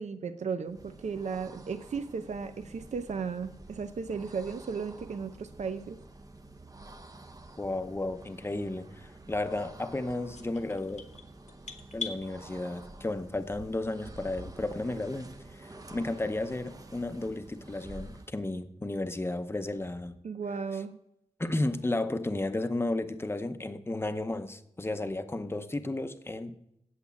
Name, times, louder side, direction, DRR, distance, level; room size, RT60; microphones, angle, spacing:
voice 1, 0.0-6.0 20.2-21.0, right 5 dB, 75° right, 0.6 m, -35 dB
sound 1, 0.6-18.4, right 2 dB, 30° right, 0.7 m, -49 dB
voice 2, 7.6-11.0 11.9-20.2 21.4-26.6, left 2 dB, 20° left, 0.7 m, -33 dB
sound 2, 10.3-12.2, left 3 dB, 80° left, 1.3 m, -40 dB
8.4 x 8.0 x 8.3 m
wide cardioid pair, 100°, 12 cm